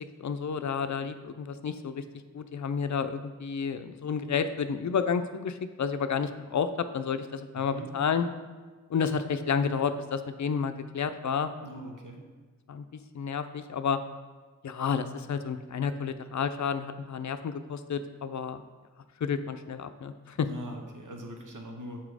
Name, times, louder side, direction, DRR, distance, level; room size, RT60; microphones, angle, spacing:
voice 1, 0.2-2.0 2.3-8.3 8.9-11.5 12.7-12.9 13.1-14.0 14.6-18.6 19.2-20.5, left 6 dB, 65° left, 10 dB, 0.5 m, -30 dB
voice 2, 7.5-7.9 11.6-12.2 20.4-22.0, right 1 dB, 80° right, 2 dB, 1.0 m, -41 dB
6.0 x 4.2 x 4.8 m, 1.4 s
cardioid pair, 40°, 31 cm